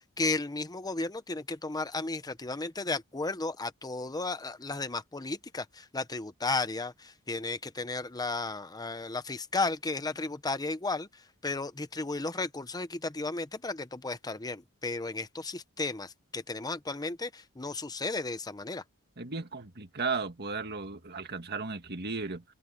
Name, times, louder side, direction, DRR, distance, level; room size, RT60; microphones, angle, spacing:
voice 1, 0.0-18.8, left 3 dB, 15° left, 0.8 m, -34 dB
voice 2, 19.2-22.4, right 4 dB, 45° right, 2.0 m, -35 dB
head